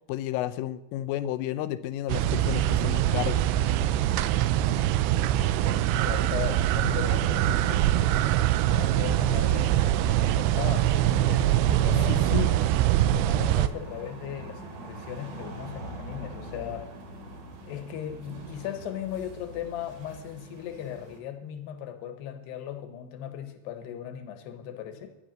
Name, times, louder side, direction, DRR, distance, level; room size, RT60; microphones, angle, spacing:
voice 1, 0.1-3.5 12.0-12.5, left 13 dB, 80° left, 12 dB, 3.1 m, -32 dB
sound 1, 2.1-13.7, right 13 dB, 85° right, 2.6 m, -23 dB
voice 2, 5.6-8.2 8.7-12.3 13.1-16.9 17.6-25.2, left 10 dB, 65° left, 8 dB, 3.0 m, -37 dB
sound 2, 5.6-21.2, right 1 dB, 45° right, 3.3 m, -45 dB
15.0 x 11.0 x 7.6 m, 0.96 s
omnidirectional pair, 6.0 m